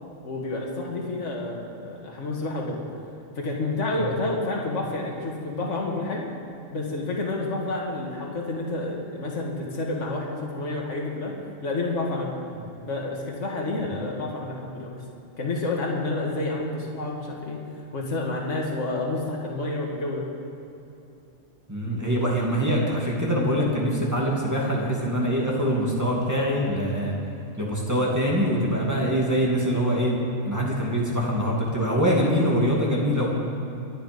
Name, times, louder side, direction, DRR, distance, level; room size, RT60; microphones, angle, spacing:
voice 1, 0.2-2.8 3.4-6.3 6.7-11.3 11.6-12.3 12.8-15.0 15.4-17.6 17.9-20.3, left 2 dB, 70° left, -2 dB, 2.1 m, -29 dB
voice 2, 21.7-27.1 27.6-30.1 30.4-33.3, equal, 15° right, -4 dB, 2.4 m, -24 dB
23.5 x 9.1 x 5.3 m, 2.8 s
omnidirectional pair, 1.3 m